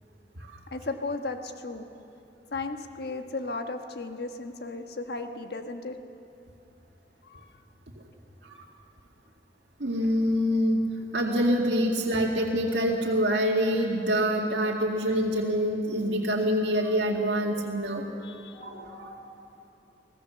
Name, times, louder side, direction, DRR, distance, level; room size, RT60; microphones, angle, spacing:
voice 1, 0.7-1.8 2.5-6.0 7.2-7.4 18.2-18.6, left 3 dB, 65° left, 6 dB, 1.4 m, -35 dB
voice 2, 9.8-10.8 11.1-18.1 18.5-19.1, equal, 85° right, -2 dB, 2.1 m, -26 dB
25.5 x 17.5 x 7.1 m, 2.8 s
head